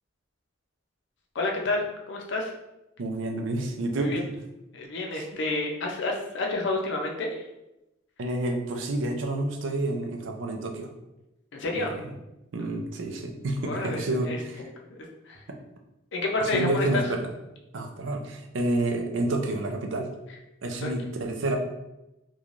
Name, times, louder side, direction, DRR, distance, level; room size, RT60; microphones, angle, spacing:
voice 1, 1.3-2.5 4.0-4.2 4.7-7.4 11.5-11.9 13.6-14.4 14.9-15.0 15.3-15.4 16.1-17.0 20.8-20.9, left 2 dB, 65° left, 1 dB, 0.5 m, -29 dB
voice 2, 3.0-4.2 5.1-5.3 8.2-10.9 11.7-11.9 12.5-14.7 16.4-17.3 17.7-20.1 20.6-21.6, right 2 dB, 75° right, 3 dB, 0.5 m, -29 dB
3.1 x 2.2 x 2.5 m, 0.93 s
head